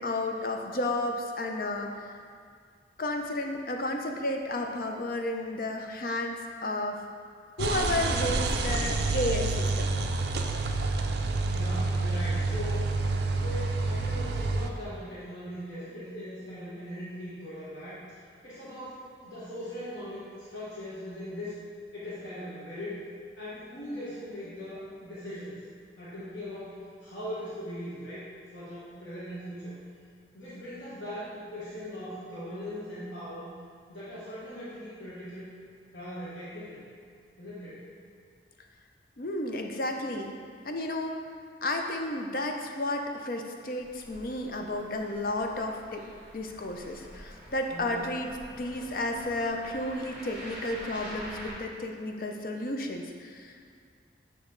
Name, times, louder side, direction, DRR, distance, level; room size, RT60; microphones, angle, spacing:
voice 1, 0.0-2.1 3.0-7.0 7.6-9.9 39.2-40.3 40.6-41.2 41.6-46.0 46.3-48.3 48.6-53.6, left 1 dB, 50° left, 3 dB, 0.5 m, -32 dB
Motorcycle chain & gear box, 7.6-14.7, right 3 dB, 65° right, 0.4 m, -28 dB
voice 2, 11.5-13.0 13.4-18.0 18.4-21.5 21.9-23.0 23.4-25.6 26.0-28.3 28.5-29.8 30.3-33.5 33.9-35.5 35.9-36.8 37.4-37.9 47.7-48.0, equal, 85° left, -11 dB, 1.2 m, -40 dB
sound 1, 43.8-51.5, equal, 5° right, 1.1 m, -46 dB
8.0 x 3.1 x 3.8 m, 2.1 s
head